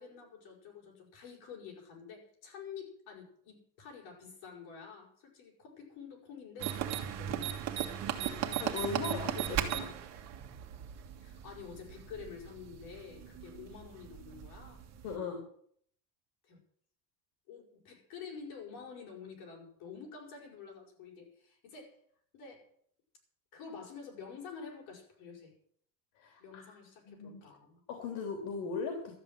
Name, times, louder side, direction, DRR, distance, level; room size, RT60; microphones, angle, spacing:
voice 1, 0.0-10.2 11.2-14.8 16.4-16.6 17.5-22.0 22.3-22.7 23.5-25.5 26.4-27.8 29.1-29.2, left 6 dB, 70° left, 1 dB, 5.8 m, -49 dB
sound 1, 6.6-15.2, right 10 dB, 45° right, 1.8 m, -38 dB
voice 2, 8.6-9.9 15.0-15.4 26.2-26.8 27.1-27.4 27.9-29.1, left 5 dB, 85° left, 3 dB, 3.2 m, -38 dB
13.0 x 7.9 x 9.3 m, 0.62 s
cardioid pair, 175°, 38 cm